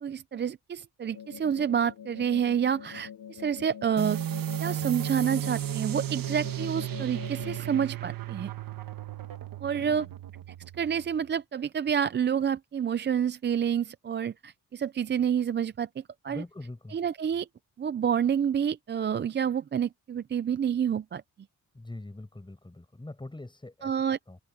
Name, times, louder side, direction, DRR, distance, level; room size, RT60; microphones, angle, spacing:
voice 1, 0.0-4.2 4.6-8.5 9.6-10.1 10.8-16.4 16.9-17.5 17.8-21.2 23.8-24.2, right 8 dB, 35° right, 0.4 m, -28 dB
sound 1, 1.1-7.9, left 8 dB, 75° left, 0.9 m, -44 dB
sound 2, 4.0-11.2, right 13 dB, 80° right, 1.6 m, -34 dB
voice 2, 9.6-10.1 16.3-17.0 21.7-24.4, left 2 dB, 15° left, 6.4 m, -43 dB
open air
cardioid pair, 115°, 33 cm